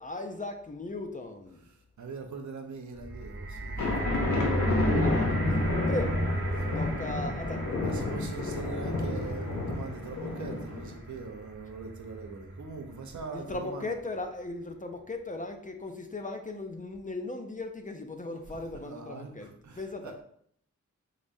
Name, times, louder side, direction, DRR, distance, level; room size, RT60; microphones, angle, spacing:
voice 1, 0.0-1.6 3.8-5.6 5.9-6.3 6.8-7.7 13.3-19.5 19.8-20.2, left 2 dB, 25° left, 0.4 m, -38 dB
voice 2, 1.7-3.9 6.6-6.7 7.8-13.9 18.7-20.2, right 4 dB, 70° right, 0.6 m, -42 dB
sound 1, 2.9-13.2 13.9-14.0, right 1 dB, 40° right, 0.9 m, -34 dB
sound 2, 3.8-10.9, left 2 dB, 65° left, 0.8 m, -30 dB
4.8 x 2.1 x 2.6 m
cardioid pair, 50°, 31 cm